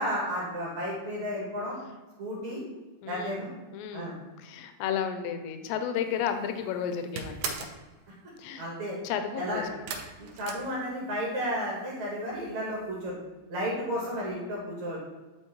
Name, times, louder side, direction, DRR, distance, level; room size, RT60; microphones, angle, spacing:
voice 1, 0.0-1.8 2.2-2.6 3.1-3.5 3.9-4.2 8.6-9.0 9.3-9.6 10.2-13.2 13.5-15.0, equal, 60° right, -6 dB, 2.0 m, -32 dB
voice 2, 3.0-3.5 3.7-7.6 8.4-8.7 9.0-9.7, left 8 dB, 85° left, 7 dB, 2.7 m, -33 dB
sound 1, 6.1-6.5 6.8-7.8 9.9-11.4 11.6-12.3 12.6-12.7 13.0-13.1, right 5 dB, 80° right, 2.5 m, -38 dB
11.0 x 4.1 x 3.0 m, 1.2 s
omnidirectional pair, 5.0 m